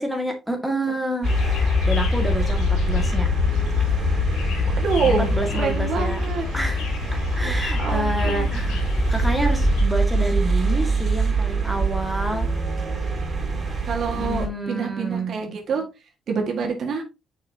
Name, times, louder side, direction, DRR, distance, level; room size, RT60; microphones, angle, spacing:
voice 1, 0.0-3.3 5.0-6.2 6.5-6.9 7.1-12.5 14.1-15.4, right 1 dB, ahead, 2 dB, 1.9 m, -28 dB
sound 1, 1.2-9.8, left 7 dB, 90° left, 1.1 m, -25 dB
sound 2, 1.2-14.5, right 4 dB, 40° right, 3.1 m, -25 dB
voice 2, 4.6-6.5 7.4-8.5 13.9-15.8 16.3-17.0, right 5 dB, 60° right, 2 dB, 1.7 m, -26 dB
6.4 x 5.7 x 2.8 m, 0.26 s
cardioid pair, 90°, 0 cm